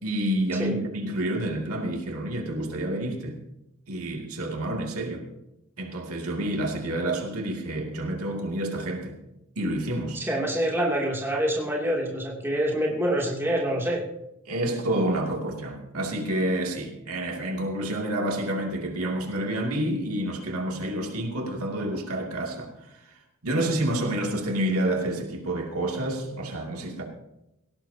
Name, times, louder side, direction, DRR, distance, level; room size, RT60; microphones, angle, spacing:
voice 1, 0.0-3.4 3.9-5.3 5.8-9.2 9.6-10.2 14.5-22.7 23.4-27.0, right 1 dB, 85° right, 1 dB, 2.5 m, -29 dB
voice 2, 10.1-14.0, right 1 dB, 10° right, -3 dB, 2.7 m, -26 dB
18.0 x 17.5 x 2.8 m, 0.88 s
head